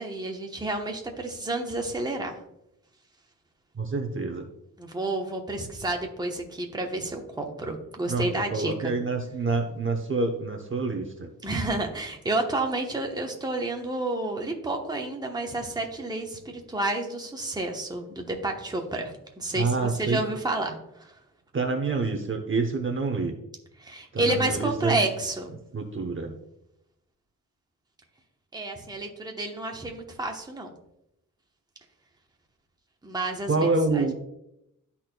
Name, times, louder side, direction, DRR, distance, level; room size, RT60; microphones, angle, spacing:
voice 1, 0.0-2.4 4.8-8.9 11.4-21.1 23.8-25.5 28.5-30.7 33.0-33.7 33.9-34.1, right 2 dB, 10° right, 2 dB, 0.9 m, -30 dB
voice 2, 3.7-4.5 8.1-11.3 19.5-20.2 21.5-23.3 24.1-25.0 25.7-26.4 33.5-34.1, right 3 dB, 35° right, 3 dB, 0.8 m, -27 dB
12.0 x 4.2 x 2.2 m, 0.81 s
wide cardioid pair, 115°, 33 cm